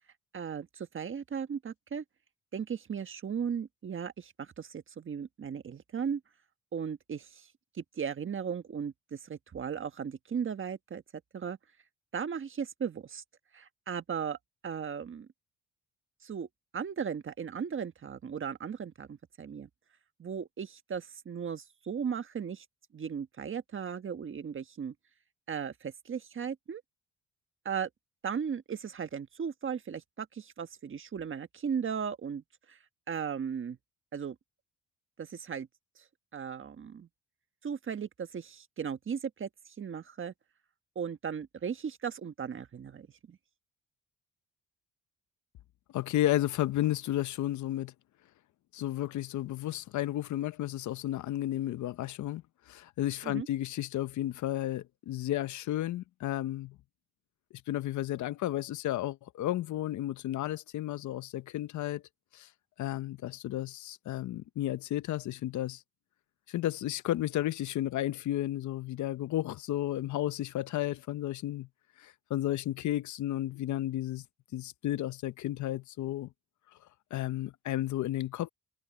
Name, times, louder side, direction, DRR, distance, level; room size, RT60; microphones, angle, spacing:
voice 1, 0.3-2.0 2.5-6.2 6.7-7.5 7.7-11.0 11.3-11.6 12.1-13.2 13.5-14.4 14.6-15.3 16.2-16.5 16.7-19.7 20.2-22.6 22.9-24.9 25.5-26.8 27.6-27.9 28.2-32.8 33.1-33.8 34.1-34.3 35.2-35.7 36.0-36.1 36.3-37.1 37.6-40.3 40.9-43.4 53.2-53.5, right 7 dB, 40° right, 1.5 m, -36 dB
voice 2, 45.9-47.9 48.7-56.8 57.7-62.0 62.3-62.5 62.8-65.8 66.5-71.7 72.0-74.2 74.5-76.3 77.1-78.5, left 14 dB, 70° left, 0.8 m, -33 dB
cardioid pair, 90°, 30 cm